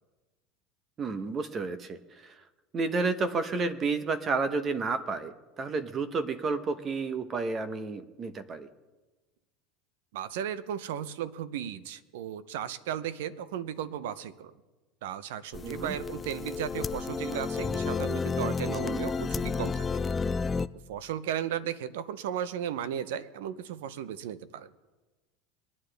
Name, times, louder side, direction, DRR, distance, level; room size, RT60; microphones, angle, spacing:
voice 1, 1.0-2.3 2.7-8.7 15.6-15.9, right 4 dB, 35° right, 12 dB, 0.9 m, -31 dB
voice 2, 10.1-14.5 15.0-20.0 20.9-24.7, right 9 dB, 80° right, 16 dB, 0.7 m, -35 dB
sound 1, 15.5-20.7, left 5 dB, 20° left, 0.4 m, -31 dB
22.5 x 9.8 x 3.4 m, 1.2 s
supercardioid pair, 110°, 0 cm